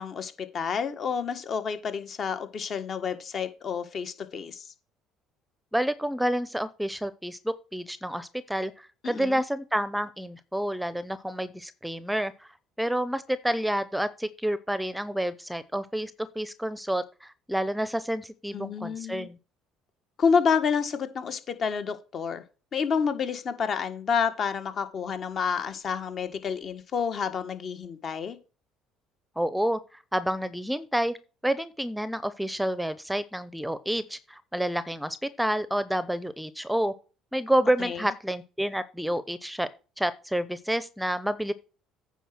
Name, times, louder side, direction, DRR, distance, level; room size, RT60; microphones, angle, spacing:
voice 1, 0.0-4.7 9.0-9.4 18.5-19.3 20.2-22.4 22.7-28.4 37.8-38.0, left 6 dB, 50° left, 9 dB, 1.6 m, -29 dB
voice 2, 5.7-12.5 12.8-19.4 29.4-29.8 30.1-31.2 31.4-36.9 37.3-39.7 40.0-41.5, right 1 dB, 5° right, 15 dB, 0.8 m, -29 dB
9.2 x 4.9 x 6.0 m, 0.34 s
supercardioid pair, 75°, 0 cm